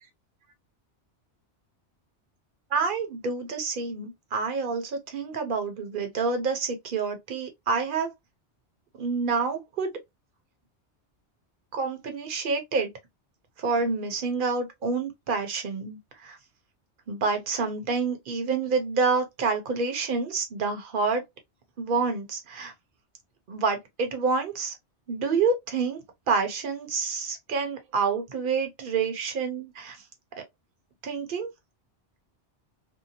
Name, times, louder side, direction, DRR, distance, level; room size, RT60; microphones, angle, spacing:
voice 1, 2.7-8.1 9.0-9.9 11.7-12.9 13.6-16.4 17.1-21.2 21.8-22.7 23.5-24.7 25.1-26.0 26.3-30.0 31.0-31.5, right 4 dB, 50° right, 0.9 m, -28 dB
2.7 x 2.2 x 2.7 m
omnidirectional pair, 1.2 m